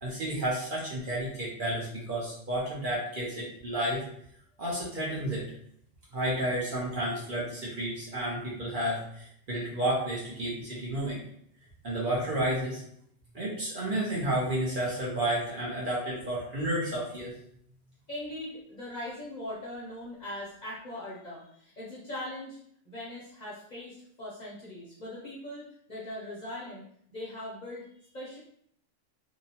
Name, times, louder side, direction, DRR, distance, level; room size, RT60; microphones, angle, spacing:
voice 1, 0.0-4.0 4.6-5.4 6.1-11.2 11.8-12.8 13.3-17.3, right 1 dB, 50° right, -6 dB, 0.8 m, -31 dB
voice 2, 18.1-22.6 22.8-26.8 27.1-28.4, left 1 dB, 45° left, -7 dB, 0.7 m, -40 dB
2.8 x 2.1 x 2.8 m, 0.67 s
omnidirectional pair, 1.3 m